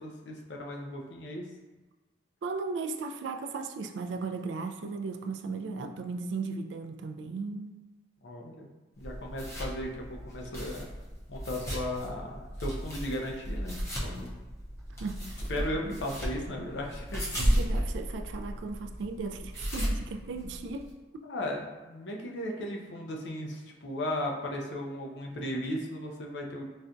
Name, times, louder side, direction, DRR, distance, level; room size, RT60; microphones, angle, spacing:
voice 1, 0.0-1.4 8.2-8.7 9.0-10.9 11.3-13.8 14.0-14.3 15.5-17.2 21.2-26.6, left 1 dB, 90° left, 0 dB, 0.5 m, -36 dB
voice 2, 2.4-7.8 15.0-16.0 17.4-21.3, right 4 dB, 90° right, 6 dB, 0.3 m, -37 dB
sound 1, 9.0-20.9, equal, 15° left, 0.6 m, -34 dB
4.1 x 2.2 x 2.5 m, 1.2 s
head